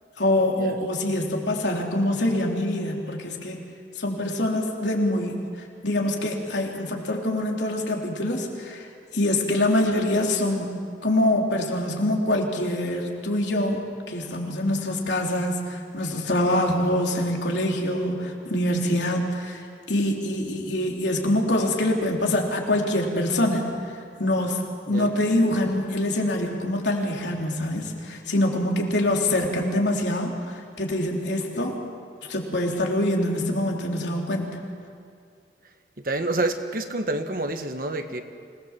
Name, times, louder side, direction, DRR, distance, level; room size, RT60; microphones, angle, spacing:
voice 1, 0.2-3.6 4.0-5.4 5.8-8.9 9.1-13.8 14.1-19.6 19.9-23.6 24.2-24.6 24.9-31.8 32.3-34.6, left 1 dB, 80° left, 0 dB, 3.4 m, -25 dB
voice 2, 36.0-38.2, right 2 dB, 50° right, 7 dB, 1.4 m, -28 dB
26.0 x 19.0 x 7.4 m, 2.4 s
head